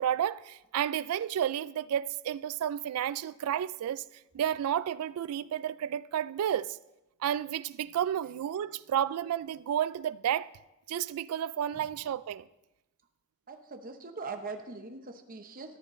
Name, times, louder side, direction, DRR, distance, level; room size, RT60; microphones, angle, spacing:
voice 1, 0.0-4.0 4.3-6.8 7.2-10.5 10.9-12.5, right 10 dB, 85° right, 0.3 m, -31 dB
voice 2, 13.5-15.8, right 4 dB, 40° right, 0.9 m, -42 dB
13.5 x 11.0 x 3.1 m
head